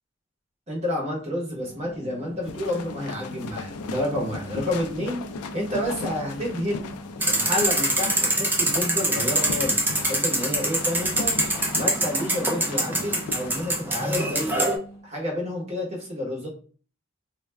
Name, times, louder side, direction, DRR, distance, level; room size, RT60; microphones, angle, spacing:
voice 1, 0.7-5.2 5.5-6.8 7.3-11.3 11.7-14.7 15.0-16.5, left 1 dB, 30° right, -2 dB, 0.9 m, -29 dB
sound 1, 1.5-15.1, right 1 dB, 60° left, 0.8 m, -43 dB
sound 2, 2.4-13.6, left 4 dB, 80° left, 0.3 m, -37 dB
sound 3, 7.2-14.8, right 1 dB, 10° right, 0.4 m, -24 dB
2.3 x 2.1 x 3.2 m, 0.41 s
head